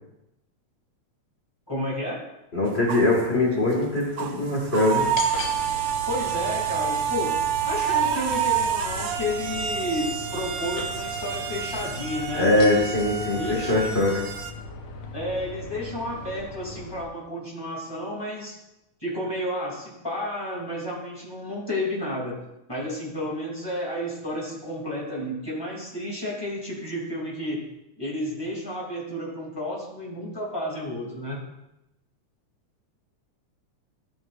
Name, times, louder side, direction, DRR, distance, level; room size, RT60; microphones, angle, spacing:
voice 1, 1.7-2.2 6.1-7.4 7.6-12.9 13.3-14.0 15.1-18.5 19.0-22.4 22.7-27.6 28.0-31.4, left 1 dB, 10° left, -4 dB, 2.6 m, -31 dB
voice 2, 2.5-5.1 12.3-14.2, left 2 dB, 25° left, -3 dB, 1.8 m, -22 dB
sound 1, 2.7-3.2 3.7-3.8 4.2-14.5, right 8 dB, 80° right, 1.2 m, -28 dB
sound 2, 4.9-17.0, left 2 dB, 65° left, 1.4 m, -38 dB
13.5 x 7.8 x 2.6 m, 0.88 s
omnidirectional pair, 3.4 m